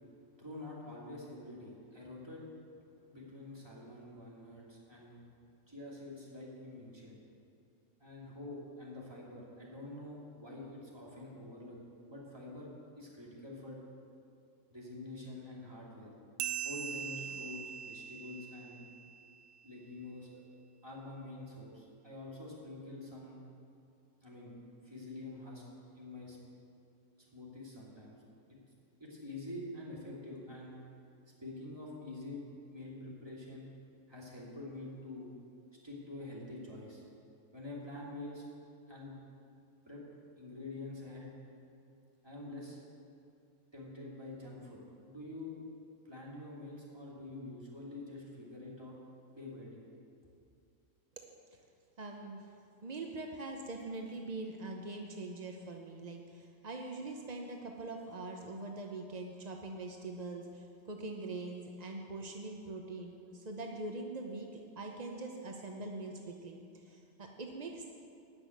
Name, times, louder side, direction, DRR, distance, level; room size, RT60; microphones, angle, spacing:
voice 1, 0.4-2.4 3.1-5.2 5.7-7.2 8.0-11.8 12.1-13.8 14.7-16.1 16.6-18.8 19.6-20.4 20.8-23.4 24.2-25.6 25.9-26.4 27.2-28.2 28.5-28.6 29.0-30.8 31.4-33.7 34.1-35.3 35.8-37.0 37.5-38.4 38.9-39.1 39.9-40.0 40.4-41.3 42.2-42.8 43.7-45.6 46.0-49.0 49.3-49.8, left 2 dB, 15° right, -5 dB, 2.7 m, -46 dB
sound 1, 16.4-19.4, right 8 dB, 75° right, 1.2 m, -41 dB
voice 2, 52.0-52.5 52.8-67.9, right 2 dB, 55° right, 2 dB, 0.4 m, -43 dB
13.0 x 6.2 x 9.3 m, 2.5 s
omnidirectional pair, 2.0 m